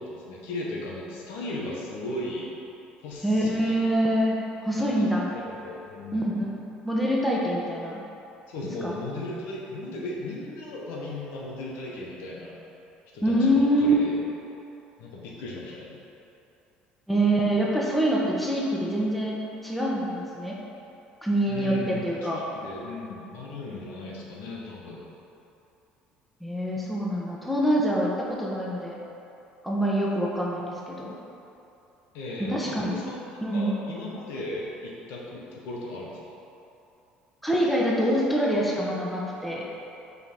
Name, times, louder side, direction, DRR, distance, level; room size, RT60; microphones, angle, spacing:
voice 1, 0.0-2.5 3.0-3.9 4.8-5.0 5.3-6.3 8.5-12.6 13.1-14.2 15.0-16.0 21.5-25.1 32.1-36.2, left 2 dB, 70° left, -4 dB, 1.0 m, -36 dB
voice 2, 3.2-4.4 4.6-5.3 6.1-6.5 6.8-8.0 8.8-8.9 13.2-13.9 17.1-19.4 19.6-20.6 21.2-22.4 26.4-28.9 29.6-31.1 32.4-32.9 33.4-33.8 37.4-39.6, right 1 dB, ahead, -4 dB, 1.2 m, -25 dB
5.6 x 4.0 x 4.3 m, 2.8 s
hypercardioid pair, 70°, 4 cm